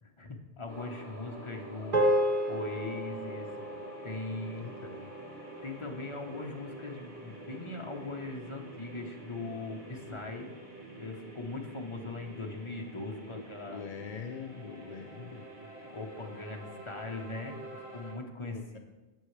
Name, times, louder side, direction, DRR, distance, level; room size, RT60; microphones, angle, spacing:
voice 1, 0.0-2.1 2.5-3.5 4.0-4.9 5.6-10.5 11.0-13.8 15.8-18.8, left 3 dB, 30° left, 2 dB, 1.0 m, -40 dB
sound 1, 0.7-18.1, right 2 dB, 70° right, 2.9 m, -47 dB
sound 2, 1.9-6.4, equal, 45° right, 0.8 m, -32 dB
voice 2, 4.5-5.1 13.3-13.4 13.7-15.5 18.5-18.8, left 7 dB, 55° left, 5 dB, 0.4 m, -43 dB
11.0 x 8.3 x 3.3 m, 1.2 s
omnidirectional pair, 1.1 m